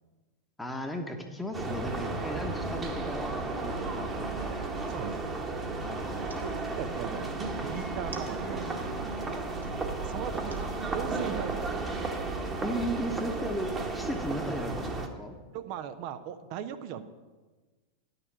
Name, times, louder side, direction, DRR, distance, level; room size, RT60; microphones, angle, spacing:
voice 1, 0.6-4.7 5.8-6.5 12.6-15.3, equal, 5° left, 3 dB, 1.1 m, -36 dB
sound 1, 1.5-15.1, right 3 dB, 20° right, 1.2 m, -33 dB
sound 2, 4.4-5.1 6.0-6.4 7.7-8.7 9.2-9.7 10.3-10.7, right 4 dB, 75° right, 1.4 m, -50 dB
voice 2, 4.9-5.3 6.4-9.0 10.0-11.8 15.5-17.0, right 9 dB, 45° right, 10 dB, 0.6 m, -39 dB
11.0 x 6.7 x 7.4 m, 1.3 s
figure-of-eight pair, 90°, 0 cm